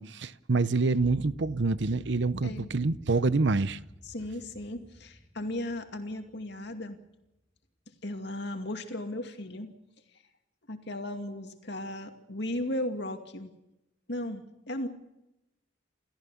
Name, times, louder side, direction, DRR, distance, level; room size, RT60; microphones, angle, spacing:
voice 1, 0.0-3.8, right 3 dB, 60° right, 0.7 m, -26 dB
sound 1, 0.9-7.0, equal, 10° right, 0.9 m, -50 dB
voice 2, 4.1-7.0 8.0-9.7 10.7-13.5 14.1-14.9, left 1 dB, 60° left, 2.4 m, -36 dB
29.0 x 14.5 x 7.1 m
head